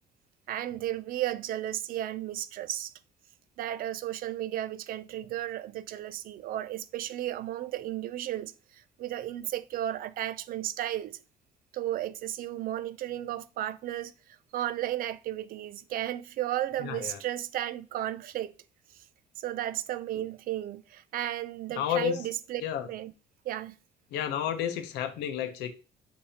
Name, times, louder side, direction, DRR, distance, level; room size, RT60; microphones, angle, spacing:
voice 1, 0.5-2.9 3.6-11.2 11.7-14.1 14.5-18.5 19.4-22.6 22.9-23.1 23.4-23.8, right 13 dB, 60° right, 0.4 m, -34 dB
voice 2, 16.8-17.2 21.7-22.2 22.6-22.9 24.1-25.7, left 10 dB, 85° left, 0.7 m, -31 dB
6.6 x 2.7 x 2.8 m
cardioid pair, 110°, 17 cm